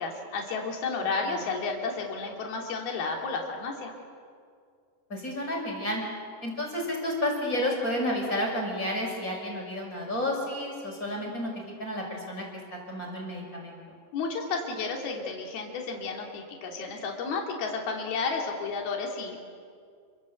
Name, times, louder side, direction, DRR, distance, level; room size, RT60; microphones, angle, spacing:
voice 1, 0.0-3.9 14.1-19.4, left 4 dB, 65° left, 1 dB, 5.0 m, -32 dB
voice 2, 5.1-6.0 6.4-11.5 11.8-12.4 12.7-13.8, left 1 dB, 20° left, -1 dB, 6.3 m, -31 dB
30.0 x 24.5 x 8.0 m, 2.2 s
omnidirectional pair, 4.8 m